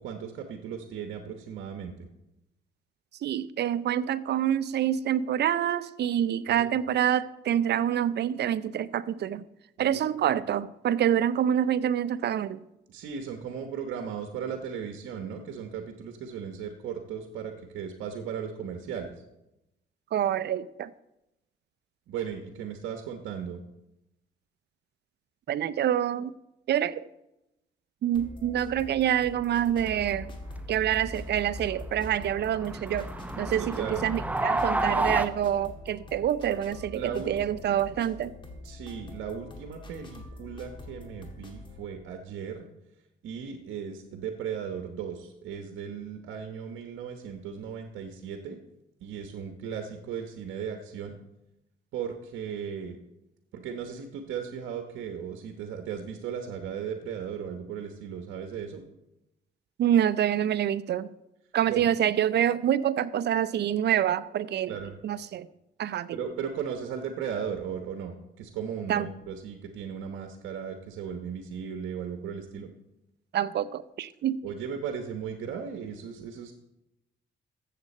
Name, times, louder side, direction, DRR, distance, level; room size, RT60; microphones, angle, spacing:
voice 1, 0.0-2.1 6.5-6.7 9.8-10.0 10.3-10.4 12.9-19.1 22.1-23.6 33.8-34.0 36.9-37.3 38.6-42.7 43.2-48.6 49.0-51.2 51.9-53.0 53.5-58.8 61.7-61.9 64.7-65.0 66.1-72.7 74.4-76.5, right 7 dB, 80° right, 1.1 m, -36 dB
voice 2, 3.2-9.4 9.8-12.6 20.1-20.9 25.5-26.3 26.7-27.1 28.0-30.3 30.7-33.1 33.4-38.3 59.8-61.1 61.5-64.8 65.0-65.5 65.8-66.2 68.9-69.1 73.3-74.4, right 10 dB, 60° right, 0.5 m, -26 dB
sound 1, 28.1-41.9, left 2 dB, 25° left, 2.0 m, -45 dB
sound 2, 29.8-35.3, right 2 dB, 5° right, 0.7 m, -32 dB
13.5 x 7.6 x 4.3 m
cardioid pair, 90°, 20 cm